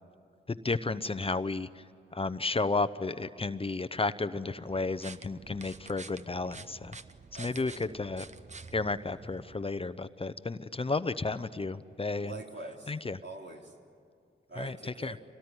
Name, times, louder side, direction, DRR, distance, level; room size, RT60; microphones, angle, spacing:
voice 1, 0.5-1.8 2.1-7.0 7.4-8.2 8.7-12.3 12.9-13.2 14.6-14.8 15.0-15.1, left 3 dB, 30° left, 13 dB, 0.8 m, -32 dB
sound 1, 4.7-9.6, right 4 dB, 35° right, 0.9 m, -48 dB
voice 2, 7.4-8.0 12.2-12.9 13.2-13.8 14.5-15.2, right 3 dB, 65° right, 1 dB, 3.5 m, -44 dB
25.0 x 18.0 x 9.7 m, 2.4 s
cardioid pair, 60°, 20 cm